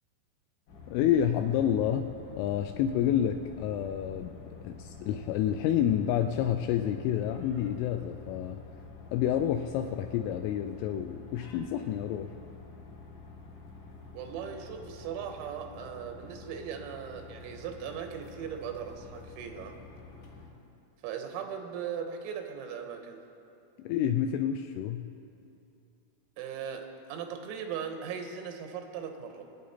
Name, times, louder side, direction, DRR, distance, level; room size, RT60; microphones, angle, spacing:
sound 1, 0.7-20.5, left 3 dB, 70° left, 4.1 m, -48 dB
voice 1, 0.9-8.6 9.1-12.3 23.8-25.1, left 10 dB, 85° left, 6 dB, 2.8 m, -29 dB
voice 2, 14.2-19.8 21.0-23.2 26.4-29.4, right 7 dB, 90° right, 5 dB, 3.7 m, -38 dB
24.5 x 9.2 x 4.2 m, 2.7 s
omnidirectional pair, 6.0 m